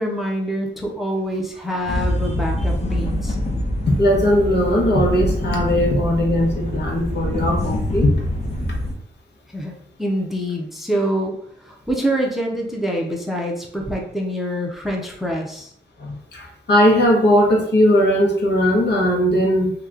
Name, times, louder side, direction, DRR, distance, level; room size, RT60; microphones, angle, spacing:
voice 1, 0.0-3.4 9.5-9.7 10.0-11.4 11.6-15.7, equal, ahead, 0 dB, 0.7 m, -25 dB
sound 1, 1.9-8.9, left 1 dB, 35° left, 0.8 m, -24 dB
voice 2, 3.9-8.1 8.6-8.7 16.0-19.7, equal, 65° left, -1 dB, 1.0 m, -18 dB
2.9 x 2.3 x 3.6 m, 0.65 s
cardioid pair, 75°, 19 cm